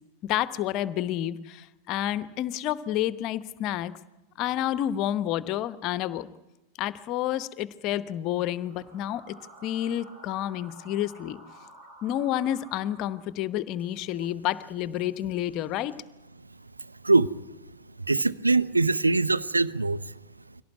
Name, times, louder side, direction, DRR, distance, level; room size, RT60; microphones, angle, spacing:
voice 1, 0.3-3.9 4.4-6.3 6.8-9.3 9.6-11.4 12.0-15.9, left 12 dB, 40° left, 1.0 m, -29 dB
sound 1, 8.5-13.6, right 2 dB, 55° right, 7.6 m, -51 dB
voice 2, 18.1-20.0, right 3 dB, 80° right, 0.7 m, -22 dB
23.0 x 17.5 x 9.4 m
figure-of-eight pair, 90°, 0 cm